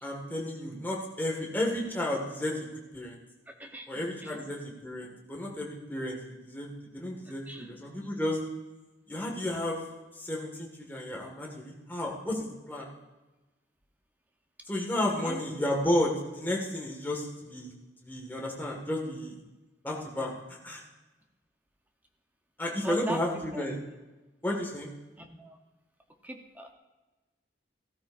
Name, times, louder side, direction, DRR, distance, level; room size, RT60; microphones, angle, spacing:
voice 1, 0.0-2.7 2.9-3.2 3.9-8.4 9.1-9.8 10.1-12.9 14.7-17.7 18.0-19.4 19.8-20.8 22.6-23.8 24.4-24.9, left 1 dB, 10° left, -2 dB, 1.8 m, -32 dB
voice 2, 3.5-3.9 4.2-4.4 7.3-7.7 15.1-15.7 22.8-23.7 25.2-25.6 26.2-26.7, right 1 dB, 10° right, 3 dB, 0.9 m, -40 dB
15.5 x 13.0 x 2.6 m, 1.1 s
head